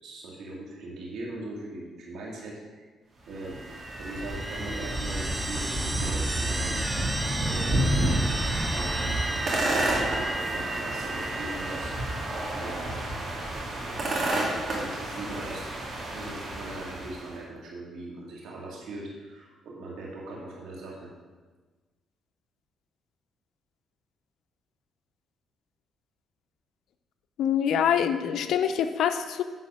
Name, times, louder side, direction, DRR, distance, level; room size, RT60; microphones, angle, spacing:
voice 1, 0.0-2.8 3.3-3.6 4.0-6.8 7.4-9.0 9.5-12.2 12.6-13.0 13.7-15.7 16.1-21.1, right 2 dB, 75° right, -3 dB, 2.2 m, -40 dB
sound 1, 3.3-17.3, right 1 dB, 50° right, 2.3 m, -30 dB
sound 2, 3.4-12.7, right 2 dB, 15° right, 0.6 m, -34 dB
voice 2, 27.4-29.4, left 8 dB, 75° left, 8 dB, 0.6 m, -25 dB
9.7 x 4.3 x 6.1 m, 1.3 s
cardioid pair, 90°, 0 cm